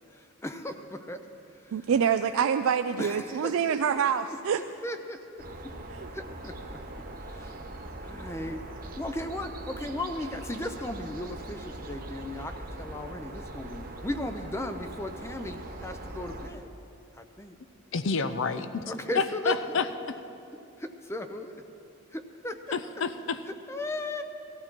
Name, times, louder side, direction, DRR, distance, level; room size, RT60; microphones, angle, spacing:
voice 1, 0.1-1.2 1.6-1.7 3.0-4.4 4.8-5.7 6.1-6.8 7.2-7.6 8.0-8.6 9.0-16.7 17.1-17.6 18.9-19.8 20.8-21.6 22.1-22.8 23.5-24.2, left 1 dB, 10° left, 7 dB, 0.5 m, -36 dB
voice 2, 1.7-4.6 5.9-6.1, right 7 dB, 75° right, 8 dB, 0.3 m, -26 dB
sound 1, 5.4-16.5, right 1 dB, 40° right, 1.1 m, -41 dB
voice 3, 17.9-18.8 19.2-19.8 22.7-23.4, left 5 dB, 60° left, 11 dB, 0.5 m, -28 dB
17.5 x 13.5 x 4.5 m, 2.8 s
head